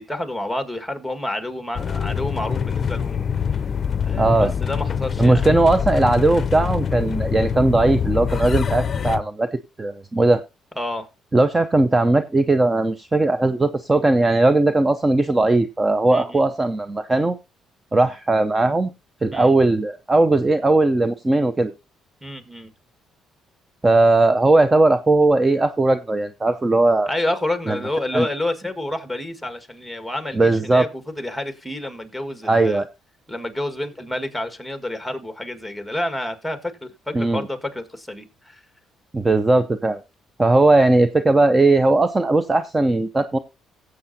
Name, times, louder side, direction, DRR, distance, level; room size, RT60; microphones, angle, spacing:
voice 1, 0.0-3.5 4.0-5.5 10.8-11.1 16.1-16.5 19.3-19.6 22.2-22.7 27.1-32.8 33.3-38.6, left 1 dB, ahead, 1.7 m, -29 dB
sound 1, 1.7-9.2, left 7 dB, 40° left, 0.6 m, -24 dB
voice 2, 4.2-4.5 5.2-9.5 9.8-10.4 11.3-17.3 17.9-18.9 19.2-21.7 23.8-27.1 27.7-27.8 28.1-28.3 30.3-30.8 32.5-32.9 37.1-37.4 39.1-40.0 40.4-43.4, right 2 dB, 20° right, 0.6 m, -18 dB
17.0 x 7.7 x 2.7 m
cardioid pair, 95°, 0 cm